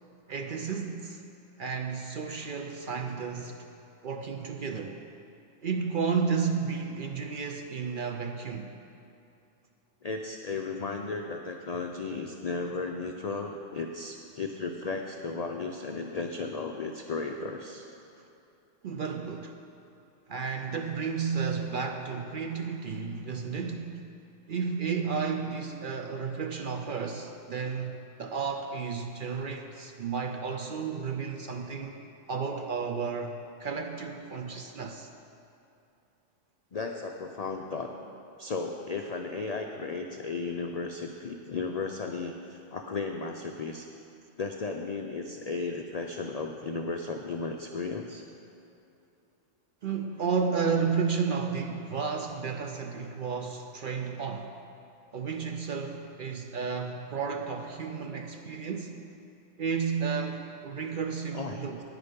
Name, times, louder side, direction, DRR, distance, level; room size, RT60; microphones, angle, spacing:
voice 1, 0.3-1.2 1.6-3.6 4.0-5.0 5.6-8.7 18.8-19.6 20.3-24.0 24.5-32.0 32.3-35.1 49.8-54.5 55.1-59.0 59.6-61.8, right 5 dB, 60° right, 5 dB, 0.6 m, -32 dB
voice 2, 10.0-17.9 36.7-37.9 38.4-43.9 44.4-48.2 61.3-61.6, left 4 dB, 60° left, 3 dB, 0.4 m, -35 dB
9.7 x 9.2 x 5.1 m, 2.8 s
omnidirectional pair, 1.3 m